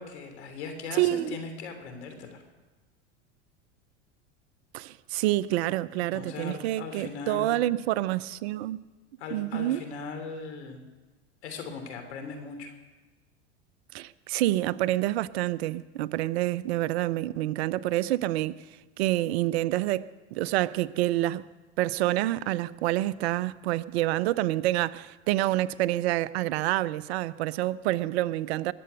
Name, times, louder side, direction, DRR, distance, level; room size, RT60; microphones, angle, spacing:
voice 1, 0.0-2.4 6.1-7.7 9.2-10.8 11.4-12.7, left 4 dB, 80° left, 3.2 m, -39 dB
voice 2, 0.9-1.4 4.7-8.8 9.3-9.8 13.9-18.6 19.0-21.4 21.8-28.7, right 16 dB, 70° right, 0.6 m, -27 dB
21.0 x 7.8 x 8.1 m
hypercardioid pair, 100°, 33 cm